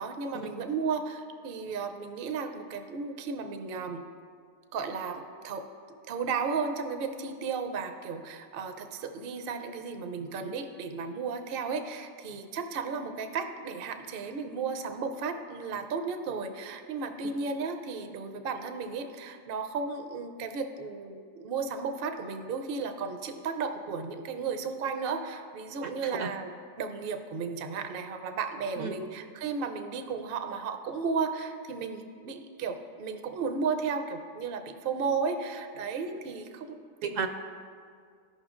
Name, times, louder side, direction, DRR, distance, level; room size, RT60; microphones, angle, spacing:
voice 1, 0.0-4.0 4.7-5.6 5.9-26.5 26.8-37.3, right 5 dB, 55° right, 6 dB, 0.7 m, -34 dB
voice 2, 25.8-26.3 28.8-28.9 37.0-37.3, right 6 dB, 75° right, 5 dB, 1.0 m, -34 dB
15.5 x 5.6 x 2.4 m, 2.2 s
omnidirectional pair, 1.4 m